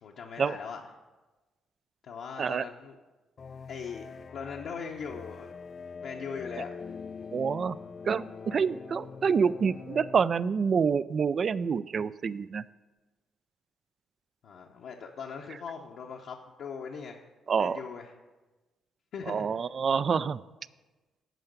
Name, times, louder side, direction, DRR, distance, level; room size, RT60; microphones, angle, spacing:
voice 1, 0.0-0.8 2.0-3.0 3.7-5.5 6.0-7.0 14.4-17.2 17.5-18.1 19.1-19.5, left 6 dB, 70° left, -2 dB, 0.8 m, -40 dB
sound 1, 3.4-10.3, left 5 dB, 45° left, 0.3 m, -44 dB
voice 2, 7.3-7.8 8.0-12.6 17.5-17.8 19.3-20.4, right 6 dB, 50° right, 18 dB, 0.3 m, -27 dB
9.1 x 5.7 x 7.9 m, 1.2 s
cardioid pair, 90°, 0 cm